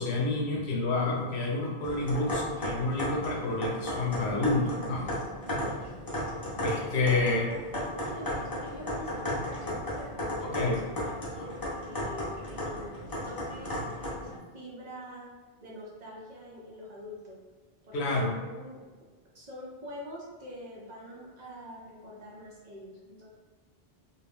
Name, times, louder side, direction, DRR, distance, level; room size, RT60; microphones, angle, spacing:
voice 1, 0.0-5.1 6.6-7.5 10.4-10.8 17.9-18.4, left 2 dB, 90° left, -1 dB, 0.9 m, -29 dB
sound 1, 1.8-14.4, left 1 dB, 25° left, 0.6 m, -35 dB
voice 2, 7.5-12.9 13.2-15.3 15.6-17.4 17.8-18.9 19.3-23.3, equal, 50° right, -5 dB, 0.6 m, -45 dB
2.4 x 2.1 x 3.5 m, 1.3 s
omnidirectional pair, 1.1 m